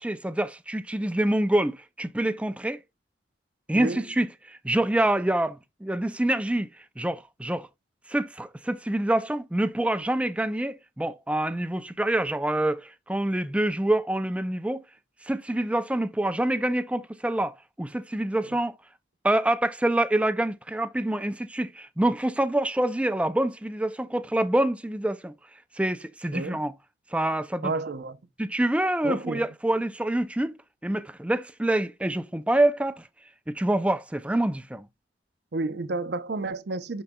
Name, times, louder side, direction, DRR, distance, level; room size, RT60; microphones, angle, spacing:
voice 1, 0.0-2.8 3.7-6.7 7.0-7.7 8.1-14.8 15.2-18.7 19.2-25.3 25.7-26.7 27.1-27.7 28.4-33.1 33.5-34.9, right 1 dB, 5° right, 0.4 m, -26 dB
voice 2, 27.6-28.2 29.0-29.5 35.5-37.0, right 3 dB, 55° right, 0.6 m, -30 dB
11.5 x 3.9 x 2.2 m
head